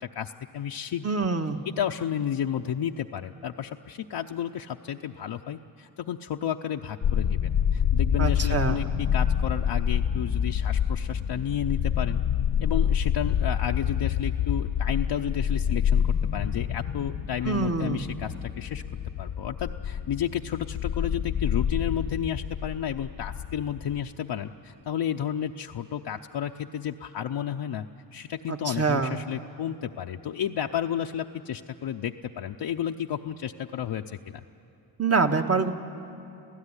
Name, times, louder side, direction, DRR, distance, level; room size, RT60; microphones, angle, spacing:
voice 1, 0.0-1.1 1.7-12.2 12.6-18.8 19.2-27.9 28.1-34.4, left 9 dB, 65° left, 2 dB, 0.7 m, -32 dB
voice 2, 1.0-1.6 8.2-8.8 17.4-18.0 28.5-29.2 35.0-35.7, right 4 dB, 35° right, 6 dB, 1.5 m, -25 dB
sound 1, 7.0-24.0, left 8 dB, 80° left, 1.1 m, -27 dB
27.0 x 16.0 x 9.8 m, 2.7 s
cardioid pair, 65°, 44 cm